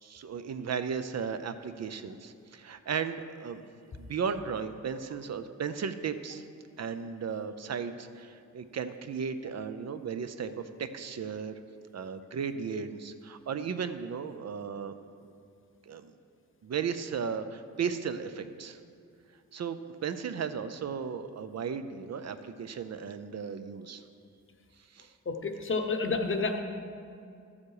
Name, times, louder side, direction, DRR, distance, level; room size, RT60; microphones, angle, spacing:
voice 1, 0.0-3.6 4.0-6.4 6.8-11.5 11.9-14.9 15.9-16.1 16.6-18.8 19.5-24.0 24.9-25.1, right 6 dB, 50° right, 10 dB, 0.5 m, -35 dB
voice 2, 25.3-26.6, left 3 dB, 35° left, 5 dB, 0.9 m, -30 dB
12.5 x 7.3 x 4.8 m, 2.4 s
wide cardioid pair, 130°, 34 cm